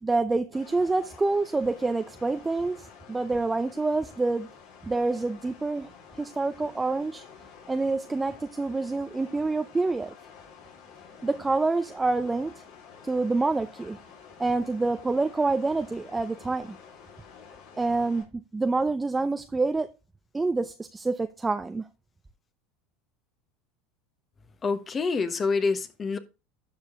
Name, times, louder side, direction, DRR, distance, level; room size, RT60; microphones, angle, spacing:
voice 1, 0.0-4.5 4.8-5.9 6.2-7.2 7.7-10.1 11.2-12.5 13.0-14.0 14.4-16.8 17.8-19.9 20.3-21.9, right 3 dB, 15° right, 0.6 m, -27 dB
sound 1, 0.5-18.2, left 6 dB, 60° left, 4.2 m, -50 dB
voice 2, 24.6-26.2, left 4 dB, 30° left, 1.2 m, -26 dB
12.0 x 4.8 x 3.7 m
hypercardioid pair, 95°, 0 cm